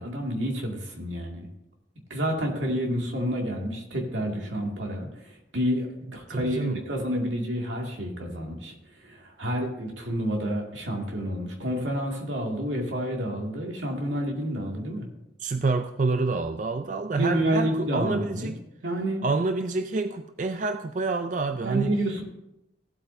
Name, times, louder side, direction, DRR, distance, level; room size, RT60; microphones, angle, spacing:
voice 1, 0.0-1.5 2.1-5.9 6.1-8.7 9.0-15.1 17.1-18.5 18.8-19.2 21.6-22.2, equal, 90° right, 0 dB, 2.2 m, -29 dB
voice 2, 6.3-6.8 15.4-18.6 19.2-22.0, right 3 dB, 40° right, 8 dB, 0.4 m, -28 dB
16.5 x 8.3 x 2.7 m, 0.89 s
head